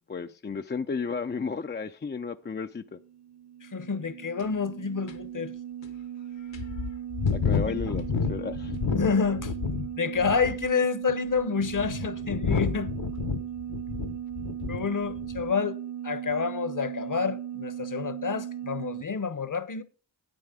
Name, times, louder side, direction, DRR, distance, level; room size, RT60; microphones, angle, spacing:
voice 1, 0.1-3.0 7.3-8.7, left 5 dB, 25° left, 0.4 m, -33 dB
sound 1, 2.8-19.0, right 10 dB, 35° right, 0.8 m, -37 dB
voice 2, 3.6-5.5 7.7-7.9 8.9-9.5 10.0-12.9 14.7-15.8 16.0-19.8, left 5 dB, 40° left, 0.9 m, -28 dB
sound 2, 4.4-4.5 5.1-5.2 5.8-5.9 6.5-9.9 10.2-10.7 11.4-14.9 15.2-15.5, left 5 dB, 65° left, 1.1 m, -30 dB
10.5 x 8.7 x 3.7 m
cardioid pair, 40°, 48 cm